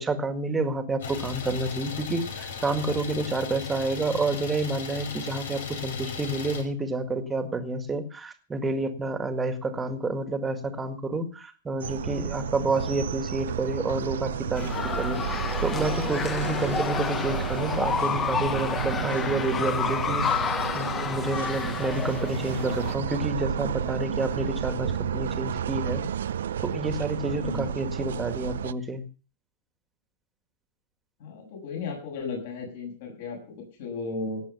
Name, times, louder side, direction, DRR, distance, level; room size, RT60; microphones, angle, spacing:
voice 1, 0.0-15.3 15.6-26.0 26.6-29.0, right 2 dB, 10° right, 8 dB, 1.8 m, -29 dB
Idling, 1.0-6.6, left 6 dB, 80° left, 5.2 m, -37 dB
sound 1, 11.8-28.7, right 9 dB, 90° right, 0.6 m, -31 dB
sound 2, 14.6-23.0, left 6 dB, 20° left, 0.9 m, -30 dB
voice 2, 27.4-27.7 31.2-34.4, left 4 dB, 60° left, 2 dB, 7.2 m, -35 dB
17.5 x 8.3 x 6.9 m, 0.37 s
supercardioid pair, 150°, 0 cm